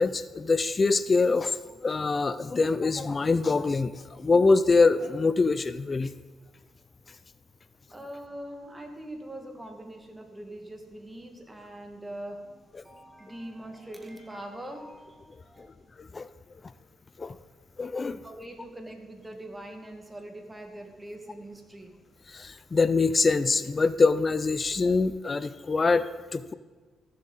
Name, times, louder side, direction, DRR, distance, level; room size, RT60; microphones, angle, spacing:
voice 1, 0.0-1.6 1.8-6.1 16.0-16.3 17.2-17.4 17.8-18.2 22.3-26.5, left 4 dB, 35° left, 14 dB, 0.4 m, -24 dB
voice 2, 7.9-15.7 18.2-22.0, right 1 dB, 15° right, 3 dB, 1.9 m, -42 dB
14.0 x 7.5 x 4.1 m, 1.3 s
supercardioid pair, 65°, 0 cm